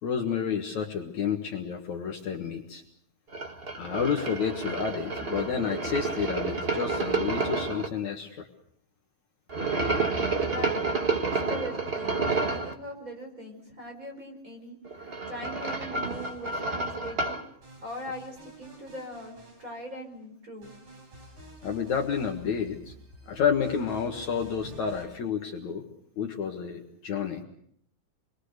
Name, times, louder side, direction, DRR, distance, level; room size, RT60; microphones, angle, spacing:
voice 1, 0.0-2.8 3.8-8.5 21.6-22.9 23.3-25.8 26.2-27.4, left 7 dB, 60° left, 3 dB, 2.7 m, -30 dB
sound 1, 3.3-7.9 9.5-12.7 14.8-17.4, right 3 dB, 85° right, 0.5 m, -30 dB
voice 2, 10.0-10.8 11.2-14.8 15.3-17.4 17.8-20.7, equal, 20° right, 2 dB, 5.3 m, -41 dB
sound 2, 16.0-16.9 17.6-20.1 20.6-25.1, right 1 dB, 55° right, 6.9 m, -50 dB
27.5 x 22.5 x 6.6 m, 0.66 s
omnidirectional pair, 4.2 m